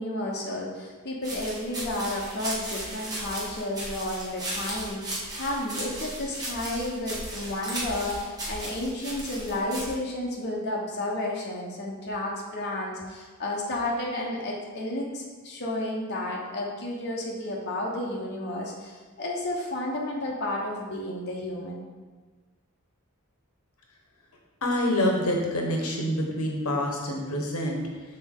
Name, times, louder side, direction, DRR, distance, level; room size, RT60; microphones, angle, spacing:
voice 1, 0.0-21.8, left 1 dB, 50° left, -3 dB, 0.9 m, -32 dB
sound 1, 1.2-9.9, right 1 dB, 20° right, 1.4 m, -36 dB
voice 2, 24.6-28.0, left 1 dB, 80° left, 0 dB, 1.0 m, -27 dB
6.7 x 4.1 x 3.7 m, 1.4 s
head